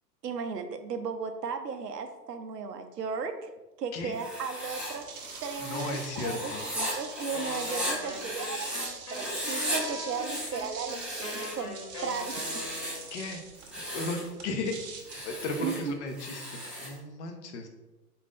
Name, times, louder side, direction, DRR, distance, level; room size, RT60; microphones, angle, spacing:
voice 1, 0.2-3.5 3.8-5.1 5.4-6.0 6.2-12.6 15.6-16.0, right 5 dB, 80° right, 8 dB, 0.6 m, -36 dB
voice 2, 3.9-4.2 5.6-6.6 13.1-13.4 13.9-14.7 15.2-17.7, left 2 dB, 45° left, 4 dB, 0.7 m, -35 dB
Writing, 4.1-8.9 9.1-9.8 10.1-11.6 12.1-13.1 13.6-14.3 15.0-17.0, equal, ahead, 0.9 m, -36 dB
sound 1, 4.6-16.1, right 5 dB, 30° right, 0.5 m, -44 dB
Wind instrument woodwind instrument, 7.3-13.1, left 2 dB, 80° left, 1.5 m, -40 dB
4.0 x 2.6 x 3.6 m, 1.1 s
figure-of-eight pair, 105°, 48 cm